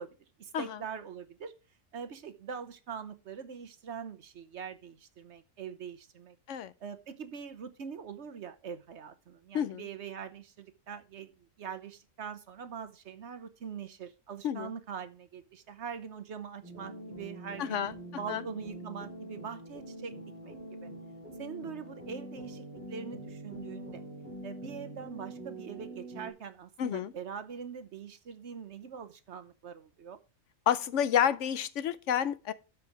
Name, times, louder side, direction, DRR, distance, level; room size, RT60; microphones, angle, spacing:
voice 1, 0.0-1.5 1.9-6.4 6.8-11.3 11.6-17.8 18.2-20.1 20.4-20.6 20.8-20.9 21.4-24.0 24.4-30.2, right 7 dB, 60° right, 1.1 m, -43 dB
voice 2, 9.5-9.9 14.4-14.7 17.6-17.9 18.3-18.4 26.8-27.1 30.7-32.5, left 9 dB, 70° left, 0.9 m, -29 dB
sound 1, 16.6-26.3, right 1 dB, 10° right, 3.5 m, -44 dB
12.5 x 4.8 x 4.6 m
omnidirectional pair, 1.4 m